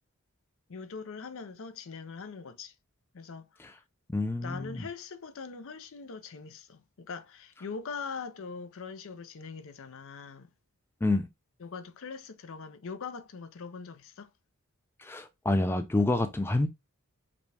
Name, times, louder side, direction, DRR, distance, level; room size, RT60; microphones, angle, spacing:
voice 1, 0.7-2.7 3.1-3.4 4.4-10.5 11.6-14.3, left 5 dB, 65° left, 0.5 m, -42 dB
voice 2, 4.1-4.8 11.0-11.3 15.0-16.7, left 2 dB, 10° left, 0.3 m, -28 dB
5.0 x 2.3 x 3.2 m
head